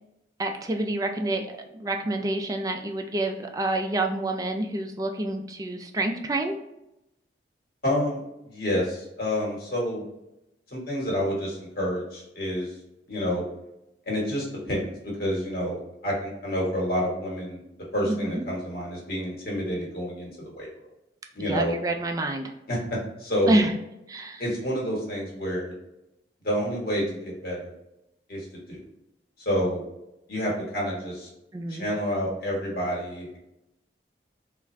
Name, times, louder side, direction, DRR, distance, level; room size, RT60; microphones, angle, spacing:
voice 1, 0.4-6.5 18.1-18.4 21.5-22.5 23.5-23.7 24.1-24.4 31.5-31.9, right 2 dB, 20° right, 4 dB, 0.3 m, -28 dB
voice 2, 7.8-8.2 8.4-10.0 10.7-12.7 13.1-13.4 14.1-17.6 17.9-20.7 21.3-21.7 22.7-23.6 24.4-25.7 26.4-27.7 28.3-28.8 29.4-29.8 30.3-31.3 31.7-33.5, equal, 55° left, -3 dB, 1.4 m, -29 dB
3.6 x 2.4 x 3.1 m, 0.87 s
head